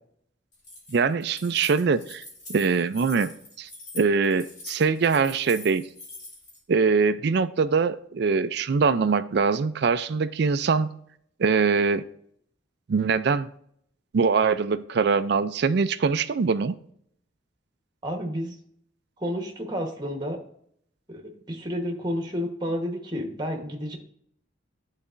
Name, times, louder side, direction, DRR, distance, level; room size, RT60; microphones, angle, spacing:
Keys jangling, 0.5-6.6, left 2 dB, 35° left, 2.5 m, -43 dB
voice 1, 0.9-2.2 2.5-3.7 3.9-5.8 6.7-10.9 11.4-12.0 12.9-13.5 14.1-16.7, right 5 dB, 55° right, 0.4 m, -23 dB
voice 2, 18.0-18.5 19.2-20.4 21.1-21.2 21.5-24.0, equal, 20° right, 1.2 m, -30 dB
11.0 x 4.1 x 2.6 m
head